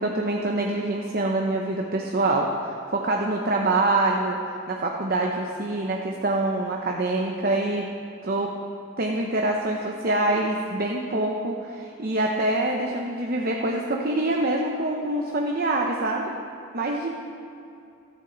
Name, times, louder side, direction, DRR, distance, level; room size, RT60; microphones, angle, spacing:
voice 1, 0.0-4.4 4.7-7.9 8.2-8.5 9.0-16.3 16.7-17.1, right 2 dB, 45° right, 0 dB, 0.9 m, -25 dB
14.0 x 13.5 x 4.0 m, 2.6 s
head